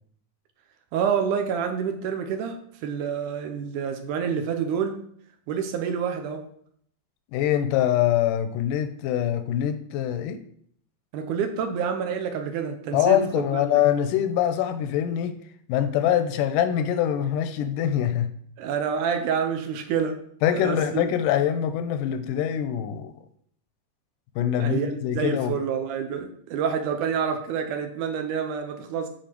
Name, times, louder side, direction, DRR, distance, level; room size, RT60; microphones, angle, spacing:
voice 1, 0.9-5.0 5.5-6.4 11.1-13.8 18.6-20.2 20.5-21.0 24.6-29.1, right 7 dB, 75° right, 6 dB, 2.2 m, -28 dB
voice 2, 7.3-10.4 12.9-15.3 15.7-18.3 20.4-23.1 24.4-25.5, left 10 dB, 85° left, 9 dB, 2.2 m, -24 dB
7.8 x 4.9 x 4.4 m, 0.65 s
omnidirectional pair, 3.8 m